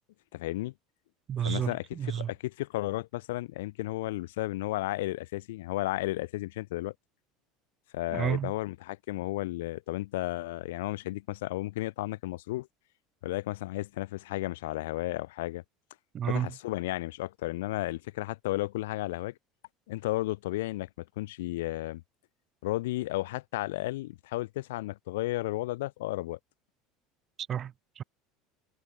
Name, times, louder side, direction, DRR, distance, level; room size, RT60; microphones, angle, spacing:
voice 1, 0.3-0.7 1.4-6.9 7.9-12.7 13.2-15.6 16.3-19.3 19.9-20.9 21.2-22.0 22.6-26.4, left 18 dB, 65° left, 0.4 m, -33 dB
voice 2, 1.3-2.3 8.1-8.5 16.1-16.5 27.5-28.0, right 9 dB, 35° right, 1.0 m, -31 dB
figure-of-eight pair, 70°, 0 cm